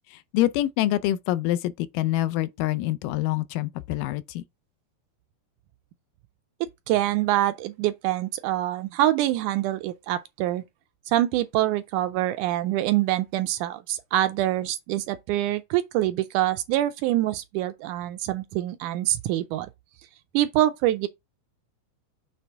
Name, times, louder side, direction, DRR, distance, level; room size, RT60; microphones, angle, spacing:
voice 1, 0.1-4.4, left 14 dB, 90° left, 2.2 m, -26 dB
voice 2, 6.9-10.6 11.1-19.7 20.3-21.1, right 14 dB, 80° right, 1.8 m, -25 dB
7.1 x 3.3 x 4.5 m
omnidirectional pair, 3.8 m